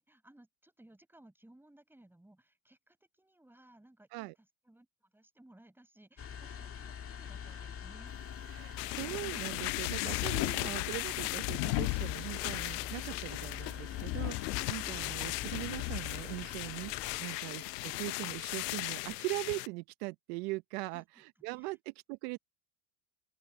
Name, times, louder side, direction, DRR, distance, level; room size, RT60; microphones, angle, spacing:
voice 1, 0.0-4.3 4.6-8.1 20.9-21.0 21.6-21.7, right 1 dB, 5° right, 6.7 m, -61 dB
sound 1, 6.2-17.2, left 8 dB, 25° left, 2.0 m, -45 dB
sound 2, 8.1-19.2, left 24 dB, 60° left, 1.4 m, -40 dB
voice 2, 8.5-22.4, right 24 dB, 65° right, 0.9 m, -41 dB
sound 3, 8.8-19.7, left 22 dB, 80° left, 0.9 m, -38 dB
open air
supercardioid pair, 125°, 48 cm